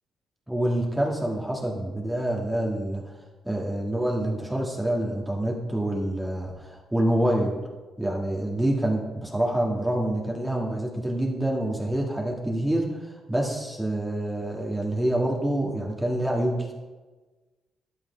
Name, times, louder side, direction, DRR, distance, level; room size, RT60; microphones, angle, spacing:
voice 1, 0.5-3.1 3.4-7.5 8.0-16.7, right 1 dB, 5° right, -2 dB, 1.5 m, -27 dB
11.5 x 6.1 x 4.3 m, 1.2 s
cardioid pair, 90°, 0 cm